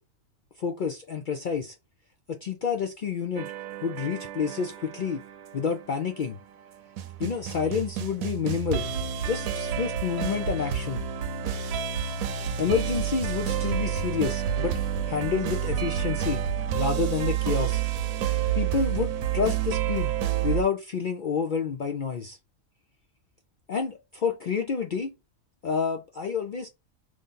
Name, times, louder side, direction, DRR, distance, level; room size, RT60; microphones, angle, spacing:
voice 1, 0.6-1.7 2.3-3.5 3.8-5.2 5.5-6.4 7.2-8.9 9.2-11.0 12.3-14.7 15.1-16.4 16.7-17.8 18.5-20.1 20.4-22.4 23.7-25.1 25.6-26.7, left 6 dB, 65° left, 0.5 m, -29 dB
sound 1, 3.4-20.6, right 9 dB, 90° right, 1.1 m, -29 dB
3.1 x 2.7 x 3.7 m
omnidirectional pair, 1.4 m